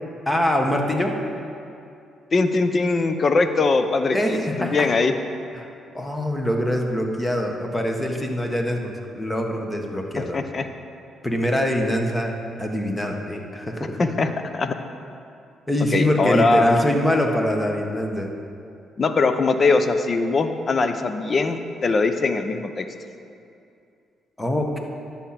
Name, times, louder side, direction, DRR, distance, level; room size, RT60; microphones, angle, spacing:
voice 1, 0.3-1.1 4.1-4.9 5.5-5.7 5.9-10.4 11.2-12.3 12.6-14.0 15.7-18.3 24.4-24.8, equal, 15° left, 2 dB, 1.3 m, -24 dB
voice 2, 2.3-5.1 10.2-10.7 14.0-14.7 15.9-16.9 19.0-22.9, left 3 dB, 40° left, 8 dB, 0.8 m, -21 dB
11.0 x 7.2 x 5.9 m, 2.5 s
cardioid pair, 90°, 0 cm